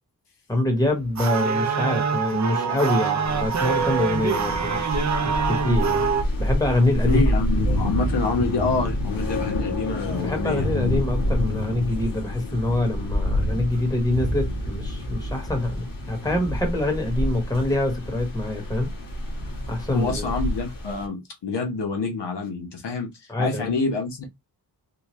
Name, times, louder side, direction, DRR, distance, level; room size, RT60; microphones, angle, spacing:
voice 1, 0.5-6.1 6.4-7.2 10.2-18.9 19.7-20.3 23.3-23.7, left 1 dB, 10° left, 1.2 m, -25 dB
sound 1, 0.9-6.2, right 6 dB, 45° right, 0.5 m, -24 dB
sound 2, 3.3-21.1, left 1 dB, 50° left, 1.9 m, -28 dB
voice 2, 7.0-10.7 19.9-23.1 23.4-24.3, left 3 dB, 75° left, 1.2 m, -27 dB
4.4 x 2.3 x 3.1 m
wide cardioid pair, 135°, 42 cm